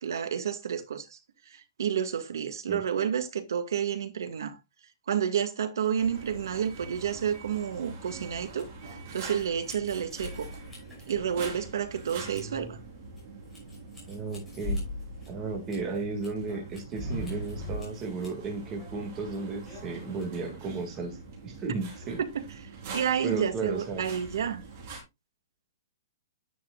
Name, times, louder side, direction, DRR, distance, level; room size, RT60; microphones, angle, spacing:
voice 1, 0.0-1.2 1.5-4.6 5.1-10.5 11.1-12.8 22.2-22.4 22.9-24.6, right 8 dB, 65° right, 1.9 m, -30 dB
sound 1, 6.0-25.0, right 4 dB, 35° right, 4.0 m, -45 dB
sound 2, 8.2-21.1, left 1 dB, ahead, 5.6 m, -42 dB
voice 2, 12.1-12.7 14.1-14.8 15.3-21.2 21.4-22.2 23.2-24.0, right 3 dB, 15° right, 2.1 m, -34 dB
10.5 x 10.0 x 2.4 m
hypercardioid pair, 175°, 2 cm